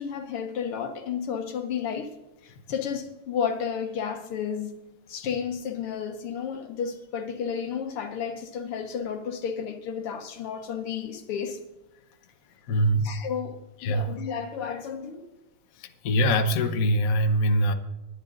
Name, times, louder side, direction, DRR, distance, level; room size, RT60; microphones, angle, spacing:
voice 1, 0.0-2.1 2.4-4.7 5.1-11.6 13.0-15.3, left 7 dB, 85° left, 2.2 m, -32 dB
voice 2, 12.7-13.0 13.8-14.1 16.0-17.7, equal, 50° left, 1.1 m, -22 dB
21.0 x 10.5 x 2.6 m
omnidirectional pair, 2.4 m